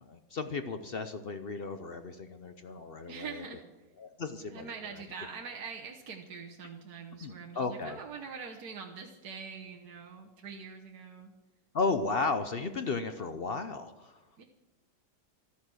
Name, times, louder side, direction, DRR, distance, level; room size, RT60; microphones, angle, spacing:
voice 1, 0.0-3.4 4.0-4.7 7.2-8.0 11.7-14.2, left 4 dB, 65° left, 9 dB, 0.5 m, -34 dB
voice 2, 3.1-3.6 4.5-11.3 14.4-14.5, right 6 dB, 60° right, 0 dB, 1.6 m, -44 dB
14.0 x 13.0 x 6.2 m, 1.1 s
omnidirectional pair, 2.1 m